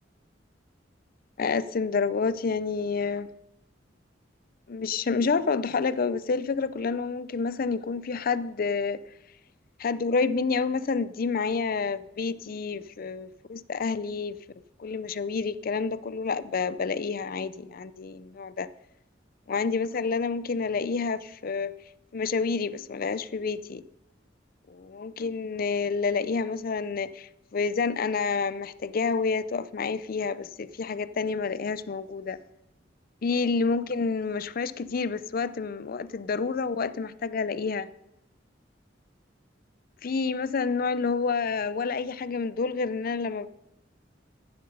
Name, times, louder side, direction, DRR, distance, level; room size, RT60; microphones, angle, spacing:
voice 1, 1.4-3.3 4.7-9.0 9.8-14.4 14.8-18.7 19.5-21.8 22.1-23.8 24.7-32.4 33.2-37.9 40.0-43.5, left 4 dB, 50° left, 0.5 m, -29 dB
14.0 x 7.8 x 5.4 m
head